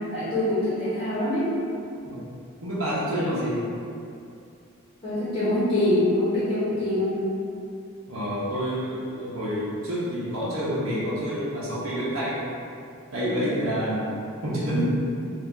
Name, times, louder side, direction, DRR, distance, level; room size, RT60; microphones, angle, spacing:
voice 1, 0.0-1.5 5.0-7.2, left 1 dB, 25° left, -12 dB, 1.0 m, -24 dB
voice 2, 2.6-3.6 8.1-12.4 13.1-14.0 14.4-14.8, equal, 65° right, -9 dB, 0.8 m, -28 dB
2.8 x 2.4 x 3.6 m, 2.5 s
head